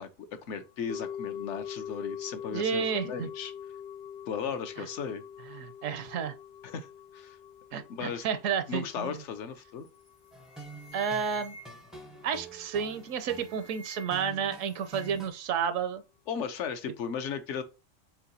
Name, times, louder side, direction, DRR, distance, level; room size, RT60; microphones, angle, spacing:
voice 1, 0.0-3.5 4.3-5.2 6.6-7.4 7.9-8.2 8.7-9.9 16.3-17.6, left 6 dB, 70° left, 1.0 m, -36 dB
sound 1, 0.9-11.2 11.4-11.5, left 8 dB, 45° left, 0.6 m, -43 dB
voice 2, 2.5-3.3 4.8-4.9 5.5-6.3 7.7-9.2 10.9-11.6 12.2-16.0, right 7 dB, 80° right, 0.9 m, -31 dB
sound 2, 9.9-10.1 10.4-12.0 12.8-14.3 14.6-15.4, left 1 dB, 85° left, 1.3 m, -51 dB
sound 3, 10.3-15.3, right 3 dB, ahead, 0.4 m, -47 dB
4.7 x 3.7 x 2.7 m
omnidirectional pair, 1.4 m